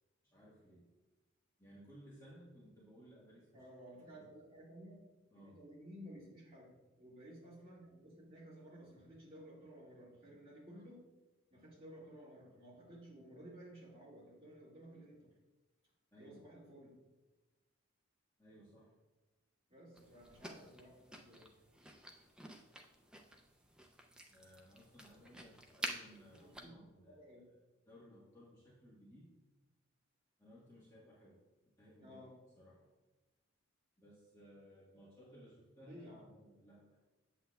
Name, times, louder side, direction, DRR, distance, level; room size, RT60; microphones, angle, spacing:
voice 1, 0.2-0.9 1.6-3.6 4.1-4.3 5.3-5.6 16.1-16.4 18.4-18.9 24.3-29.3 30.4-31.5 31.8-32.2 32.6-32.9 34.0-37.0, equal, 15° left, -9 dB, 1.4 m, -60 dB
voice 2, 3.5-5.0 5.4-11.0 11.5-15.3 16.2-17.0 19.7-21.5 26.4-27.5 32.0-32.3 35.8-36.3, equal, 25° right, -7 dB, 2.1 m, -55 dB
sound 1, 19.9-26.6, right 1 dB, 5° right, 0.4 m, -50 dB
8.1 x 7.7 x 2.3 m, 1.1 s
head